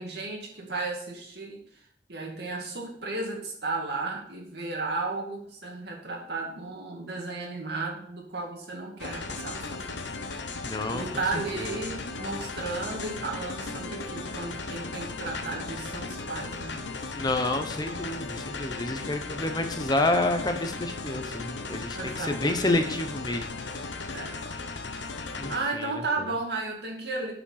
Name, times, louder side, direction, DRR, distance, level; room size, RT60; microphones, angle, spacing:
voice 1, 0.0-1.6 2.1-10.0 10.9-16.8 21.9-23.0 24.1-24.4 25.1-27.3, right 3 dB, 60° right, 0 dB, 2.2 m, -34 dB
sound 1, 9.0-25.6, left 3 dB, 75° left, 0.9 m, -36 dB
voice 2, 10.6-11.0 11.5-11.7 17.2-23.5 25.4-25.9, left 2 dB, 20° left, 6 dB, 0.7 m, -29 dB
8.4 x 5.0 x 5.7 m, 0.64 s
head